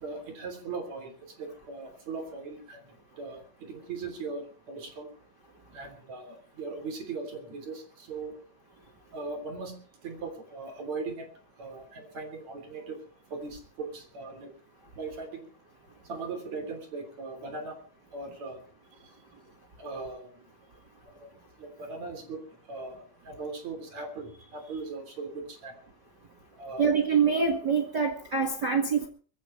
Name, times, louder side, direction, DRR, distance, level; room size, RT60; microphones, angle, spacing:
voice 1, 0.0-5.1 5.7-8.3 9.1-11.3 11.6-13.0 13.3-14.5 14.9-15.5 16.0-17.8 18.1-18.6 19.8-20.5 21.2-21.3 21.6-25.7 26.6-26.9, right 3 dB, 40° right, 6 dB, 4.2 m, -39 dB
voice 2, 26.8-29.1, right 5 dB, 60° right, 1 dB, 1.1 m, -25 dB
22.5 x 15.5 x 3.3 m, 0.39 s
omnidirectional pair, 5.1 m